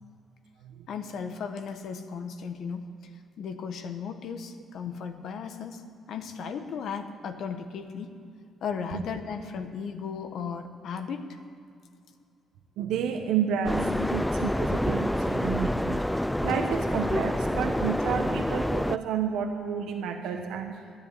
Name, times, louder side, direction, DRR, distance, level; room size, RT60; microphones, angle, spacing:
voice 1, 0.9-2.8 3.4-5.8 6.1-8.2 8.6-11.4, left 6 dB, 70° left, 7 dB, 1.2 m, -36 dB
voice 2, 12.8-16.0 16.4-20.8, right 7 dB, 90° right, 4 dB, 1.1 m, -30 dB
sound 1, 13.7-19.0, left 1 dB, 5° left, 0.3 m, -27 dB
12.5 x 10.5 x 9.2 m, 2.5 s
cardioid pair, 90°, 0 cm